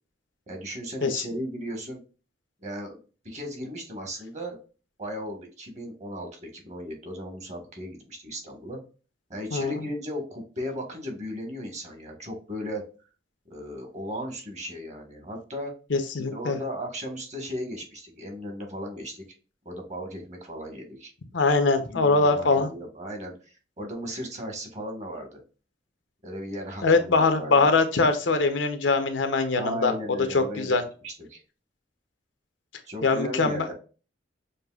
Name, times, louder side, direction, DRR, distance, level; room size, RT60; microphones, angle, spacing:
voice 1, 0.5-2.0 2.6-3.0 3.2-4.6 5.0-8.8 9.3-12.8 13.5-15.7 16.2-19.2 19.6-21.1 21.5-23.3 23.8-25.4 26.2-27.7 29.6-30.8 31.0-31.4 32.9-33.7, equal, 40° right, 2 dB, 1.4 m, -36 dB
voice 2, 15.9-16.6 21.3-22.7 26.8-29.9 30.3-30.8 33.0-33.7, left 3 dB, 85° left, 8 dB, 0.8 m, -22 dB
6.5 x 2.6 x 2.4 m, 0.35 s
head